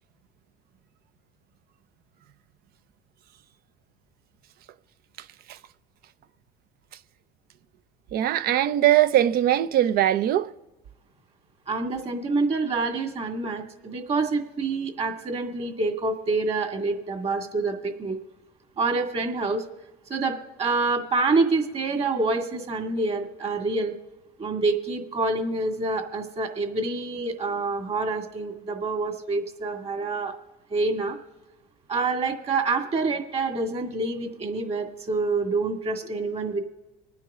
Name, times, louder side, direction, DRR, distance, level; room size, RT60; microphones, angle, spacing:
voice 1, 8.1-10.5, right 12 dB, 55° right, 0.7 m, -21 dB
voice 2, 11.7-18.2 18.8-19.6 20.1-24.0 24.4-30.3 30.7-31.2 31.9-36.6, right 3 dB, 35° right, 2.2 m, -27 dB
26.0 x 9.6 x 3.7 m
supercardioid pair, 105°, 19 cm